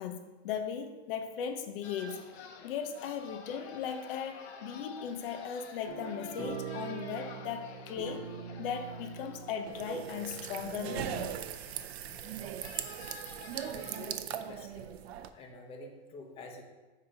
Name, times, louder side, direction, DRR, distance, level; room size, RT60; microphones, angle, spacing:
voice 1, 0.0-2.2 2.6-8.3 8.6-11.3, left 7 dB, 60° left, 7 dB, 0.8 m, -37 dB
sound 1, 1.8-14.0, left 5 dB, 80° left, 1.0 m, -50 dB
sound 2, 5.9-11.3, right 6 dB, 25° right, 1.2 m, -43 dB
sound 3, 9.7-15.3, right 10 dB, 75° right, 0.6 m, -39 dB
voice 2, 13.6-14.9 15.3-16.6, left 2 dB, 20° left, 1 dB, 0.8 m, -48 dB
8.1 x 2.9 x 5.0 m, 1.3 s
supercardioid pair, 150°, 32 cm